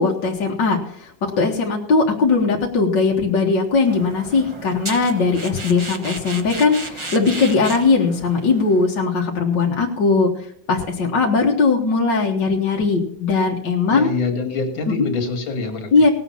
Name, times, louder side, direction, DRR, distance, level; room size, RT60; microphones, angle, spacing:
voice 1, 0.0-14.1 14.9-15.1 15.9-16.1, left 4 dB, 65° left, -1 dB, 2.2 m, -19 dB
sound 1, 3.9-8.9, right 2 dB, 25° right, 0.7 m, -34 dB
voice 2, 13.9-16.1, left 4 dB, 80° left, 3 dB, 2.8 m, -25 dB
18.0 x 8.0 x 5.6 m, 0.65 s
omnidirectional pair, 2.1 m